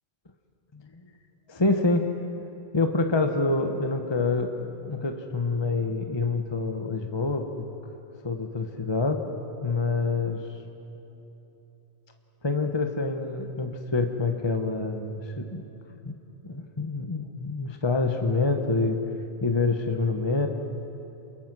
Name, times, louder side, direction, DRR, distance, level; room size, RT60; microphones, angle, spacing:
voice 1, 0.7-1.0 1.5-2.1 2.7-7.7 8.2-9.2 9.6-10.4 12.4-15.7 16.0-16.1 16.4-19.0 19.4-20.5, left 3 dB, 25° left, 5 dB, 1.1 m, -26 dB
27.5 x 22.0 x 6.1 m, 3.0 s
omnidirectional pair, 1.1 m